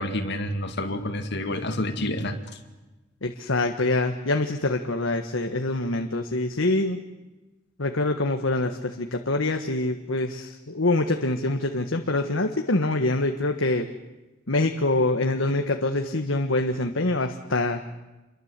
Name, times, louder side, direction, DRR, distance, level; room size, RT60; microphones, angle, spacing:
voice 1, 0.0-2.4, left 1 dB, 60° left, 5 dB, 2.2 m, -28 dB
voice 2, 3.2-7.0 7.8-13.9 14.5-17.8, left 2 dB, 80° left, 5 dB, 1.5 m, -25 dB
28.0 x 23.0 x 8.3 m, 1.1 s
head